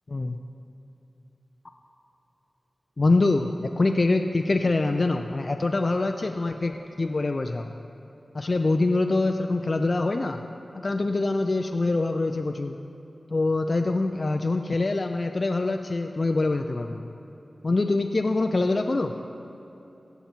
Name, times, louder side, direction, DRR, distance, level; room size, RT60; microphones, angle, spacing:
voice 1, 0.1-0.4 3.0-7.7 8.3-10.4 10.7-12.8 13.3-17.1 17.6-19.1, left 2 dB, 50° left, 5 dB, 0.4 m, -24 dB
16.0 x 7.0 x 4.5 m, 2.9 s
wide cardioid pair, 70°, 0 cm